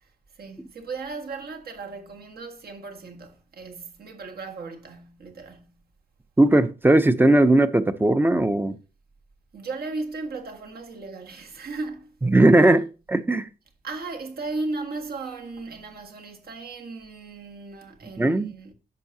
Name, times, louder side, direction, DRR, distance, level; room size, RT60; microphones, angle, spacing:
voice 1, 0.0-5.7 9.5-12.2 12.6-12.7 13.8-18.7, right 3 dB, 65° right, 1.7 m, -36 dB
voice 2, 6.4-8.7 12.2-13.5 18.2-18.5, right 1 dB, 10° right, 0.6 m, -18 dB
10.5 x 7.2 x 2.7 m
wide cardioid pair, 150°, 17 cm